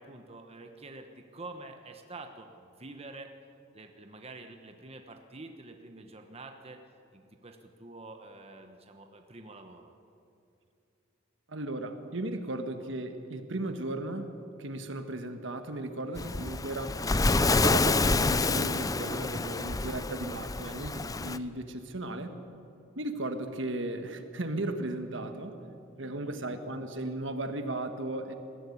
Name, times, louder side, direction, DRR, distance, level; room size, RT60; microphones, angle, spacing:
voice 1, 0.0-3.3 3.7-6.8 7.1-9.9 16.1-16.3 26.0-26.3, right 2 dB, 30° right, 5 dB, 1.1 m, -47 dB
voice 2, 11.5-14.3 14.6-17.1 17.3-22.4 22.9-25.6 26.0-28.3, right 2 dB, 65° right, 7 dB, 1.5 m, -36 dB
Waves surf, 16.2-21.4, left 3 dB, 20° left, 0.5 m, -28 dB
20.5 x 15.0 x 8.6 m, 2.7 s
head